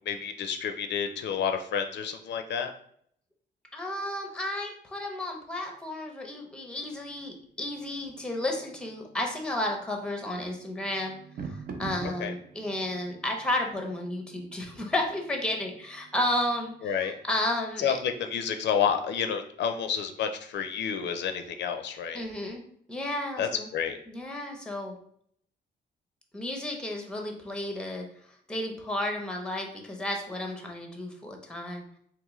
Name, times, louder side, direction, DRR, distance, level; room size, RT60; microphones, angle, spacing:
voice 1, 0.1-2.7 12.2-12.3 16.8-17.2 17.8-22.2 23.4-24.0, left 7 dB, 70° left, 6 dB, 0.4 m, -29 dB
voice 2, 3.7-11.1 11.4-18.0 22.1-22.6 22.9-23.7 24.1-24.9 26.3-28.1 28.5-31.8, left 1 dB, 5° left, 2 dB, 0.6 m, -32 dB
sound 1, 6.8-17.6, right 4 dB, 55° right, 0.5 m, -47 dB
3.6 x 2.9 x 3.0 m, 0.66 s
cardioid pair, 150°, 19 cm